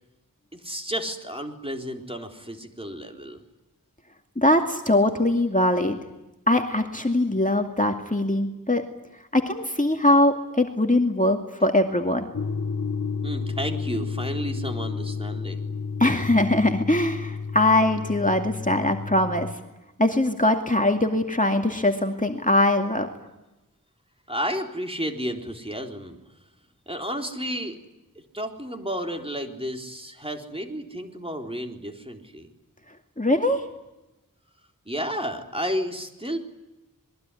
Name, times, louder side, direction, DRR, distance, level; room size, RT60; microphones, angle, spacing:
voice 1, 0.5-3.4 13.2-15.6 24.3-26.2 26.9-27.8 28.3-32.5 34.9-36.4, equal, 15° right, 3 dB, 4.0 m, -32 dB
voice 2, 4.4-6.0 6.5-8.8 9.3-12.3 16.0-19.5 20.0-23.1 33.2-33.6, left 1 dB, 25° left, 4 dB, 2.4 m, -22 dB
sound 1, 12.3-19.5, left 5 dB, 50° left, 1.3 m, -31 dB
27.0 x 22.0 x 10.0 m, 0.98 s
wide cardioid pair, 40°, 34 cm